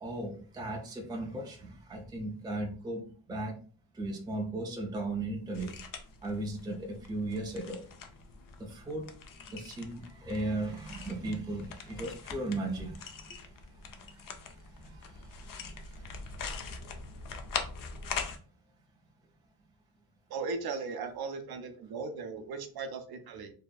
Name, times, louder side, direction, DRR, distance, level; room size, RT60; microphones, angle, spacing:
voice 1, 0.0-3.6 3.9-5.8 6.2-7.8 8.6-9.1 9.5-13.4 14.1-14.2 14.8-16.3, right 2 dB, 10° right, 1 dB, 0.4 m, -37 dB
sound 1, 5.5-18.4, left 5 dB, 60° left, 0.5 m, -43 dB
voice 2, 20.3-23.5, right 4 dB, 70° right, 7 dB, 0.5 m, -37 dB
2.7 x 2.0 x 2.3 m, 0.41 s
cardioid pair, 95°, 39 cm